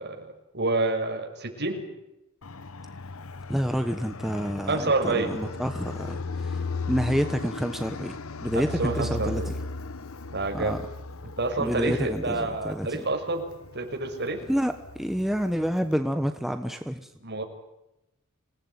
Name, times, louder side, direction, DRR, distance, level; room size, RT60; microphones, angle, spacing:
voice 1, 0.0-1.8 4.7-5.5 8.5-9.5 10.3-10.8 11.4-13.4 13.7-14.4 17.2-17.4, right 2 dB, 50° right, 3 dB, 6.1 m, -28 dB
Fixed-wing aircraft airplane, 2.4-15.9, left 3 dB, 70° left, 1.1 m, -37 dB
voice 2, 3.5-9.5 10.5-10.8 11.6-13.0 14.5-17.1, equal, ahead, 7 dB, 1.2 m, -29 dB
27.0 x 18.5 x 9.6 m, 0.89 s
head